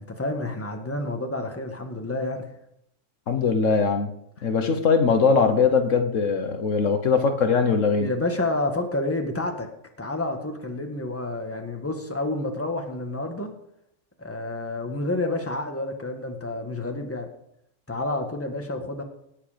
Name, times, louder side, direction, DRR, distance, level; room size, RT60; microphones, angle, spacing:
voice 1, 0.0-2.5 8.0-9.7 10.0-13.5 14.2-17.3 17.9-19.0, left 2 dB, 10° left, 4 dB, 1.6 m, -29 dB
voice 2, 3.3-4.1 4.4-8.1, left 5 dB, 70° left, 7 dB, 1.5 m, -21 dB
18.5 x 8.4 x 5.1 m, 0.75 s
omnidirectional pair, 1.3 m